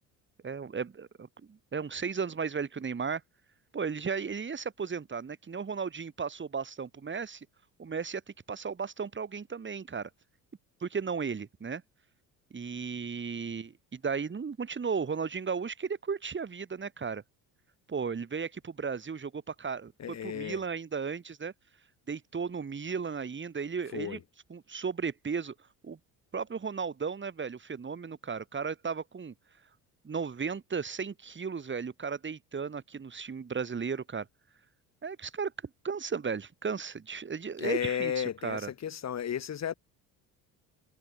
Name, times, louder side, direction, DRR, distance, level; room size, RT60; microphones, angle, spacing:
voice 1, 0.4-3.2 3.7-7.5 7.8-8.2 8.5-10.1 10.8-11.8 12.5-17.2 17.9-21.5 22.1-24.2 24.5-25.5 25.8-26.0 26.3-29.3 30.0-34.3 35.0-35.5 35.8-38.7, right 5 dB, 25° right, 2.1 m, -35 dB
voice 2, 20.0-20.6 23.9-24.2 37.6-39.7, left 9 dB, 35° left, 1.3 m, -33 dB
hypercardioid pair, 65°, 43 cm